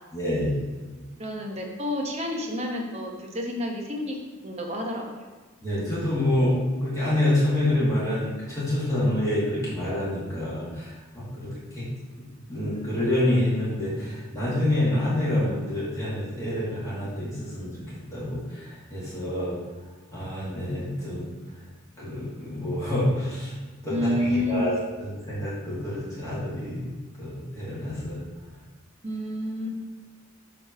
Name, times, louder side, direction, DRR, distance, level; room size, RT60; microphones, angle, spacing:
voice 1, 0.1-0.5 5.6-11.9 12.5-17.8 18.1-19.5 20.1-21.3 22.0-23.5 23.8-24.7 25.0-26.9 27.2-28.2, left 1 dB, 15° left, -10 dB, 1.8 m, -27 dB
voice 2, 1.2-4.2 4.4-5.1 23.9-24.7 29.0-29.8, left 1 dB, 30° right, 1 dB, 0.9 m, -29 dB
7.2 x 3.3 x 5.8 m, 1.3 s
head